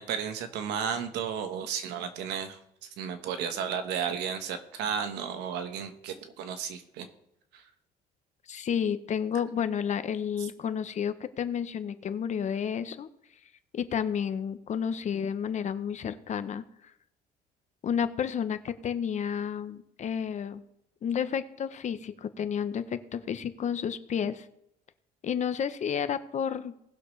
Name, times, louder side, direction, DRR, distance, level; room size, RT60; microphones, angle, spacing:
voice 1, 0.0-7.1 7.5-7.6, right 7 dB, 90° right, 8 dB, 1.3 m, -33 dB
voice 2, 8.5-13.1 13.7-16.6 17.8-20.6 21.0-24.5 25.2-26.7, left 8 dB, 45° left, 12 dB, 0.8 m, -31 dB
19.0 x 6.4 x 3.2 m, 0.80 s
cardioid pair, 110°, 17 cm